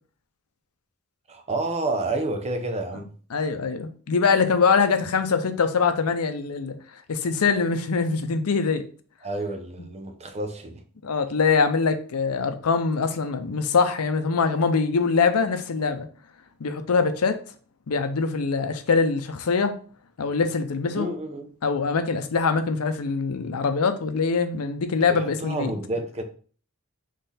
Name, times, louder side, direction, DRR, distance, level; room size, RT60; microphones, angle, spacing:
voice 1, 1.3-3.1 9.2-10.8 20.9-21.5 25.1-26.2, right 2 dB, 30° right, 0.6 m, -29 dB
voice 2, 3.3-6.8 7.1-8.8 11.0-16.1 16.6-17.4 17.9-19.8 20.2-21.1 21.6-25.7, left 5 dB, 85° left, 0.6 m, -23 dB
3.7 x 3.3 x 4.1 m
head